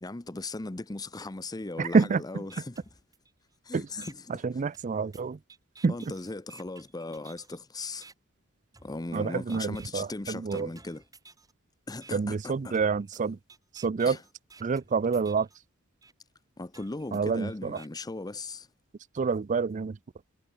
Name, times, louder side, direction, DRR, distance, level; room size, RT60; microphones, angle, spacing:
voice 1, 0.0-2.8 3.6-4.4 5.9-8.1 8.8-11.0 11.9-12.7 14.1-14.2 16.6-18.7, left 2 dB, 20° left, 0.7 m, -38 dB
voice 2, 1.8-2.2 3.7-3.8 4.4-5.4 5.8-5.9 9.1-10.7 12.1-13.4 13.7-14.2 14.6-15.5 17.1-17.8 19.1-20.0, right 5 dB, 35° right, 0.4 m, -27 dB
sound 1, 2.0-2.1 2.5-3.5 4.0-4.1 4.7-7.6 8.0-8.1 8.7-9.2 9.5-10.1 10.5-11.5 12.0-12.1 12.7-15.6 16.0-16.1 16.7-17.9, right 4 dB, 15° right, 3.3 m, -54 dB
head